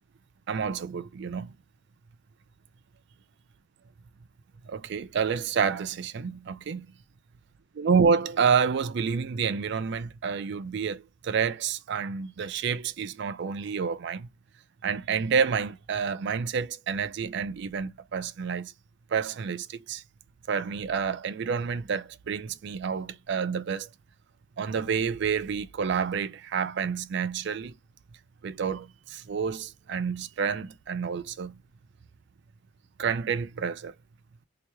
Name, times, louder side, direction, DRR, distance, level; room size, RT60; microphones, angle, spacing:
voice 1, 0.5-1.5 4.7-6.9 7.8-14.3 14.8-18.7 19.1-20.0 20.5-23.9 24.6-27.7 28.4-31.6 33.0-33.9, right 6 dB, 55° right, 0.4 m, -29 dB
3.0 x 2.9 x 3.3 m
head